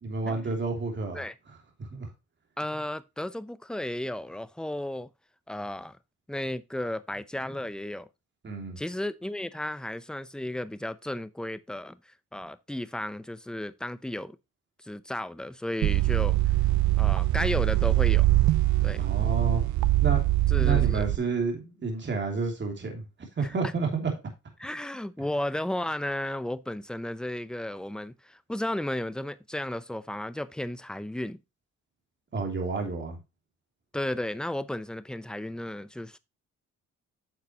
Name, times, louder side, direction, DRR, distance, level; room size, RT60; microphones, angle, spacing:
voice 1, 0.0-1.2 1.8-2.1 8.4-8.8 19.0-19.6 20.0-20.3 20.6-23.0 23.4-24.1 32.3-33.2, right 4 dB, 40° right, 2.9 m, -30 dB
voice 2, 2.6-5.1 5.5-6.0 6.3-8.1 8.8-14.4 14.8-16.4 17.0-18.3 18.8-19.1 20.5-21.1 23.4-23.5 24.6-31.4 33.9-36.2, left 1 dB, 5° left, 0.6 m, -34 dB
sound 1, 15.8-21.2, right 16 dB, 70° right, 0.5 m, -23 dB
9.9 x 6.7 x 2.9 m
cardioid pair, 90°, 30 cm